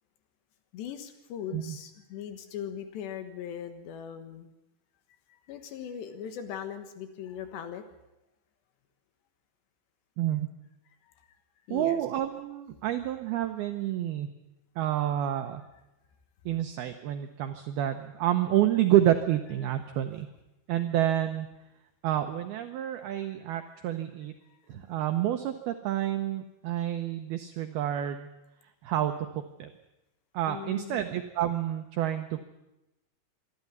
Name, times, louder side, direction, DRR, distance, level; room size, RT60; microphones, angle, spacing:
voice 1, 0.7-4.5 5.5-7.9 11.0-11.3 11.7-12.0 22.9-23.7 30.5-31.0, left 9 dB, 70° left, 8 dB, 3.2 m, -40 dB
voice 2, 10.2-10.5 11.7-14.3 14.8-15.6 16.5-20.3 20.7-21.5 22.0-24.3 24.7-28.3 28.8-29.7 30.3-32.4, right 12 dB, 90° right, 7 dB, 2.2 m, -29 dB
25.0 x 12.0 x 9.5 m, 0.95 s
omnidirectional pair, 5.6 m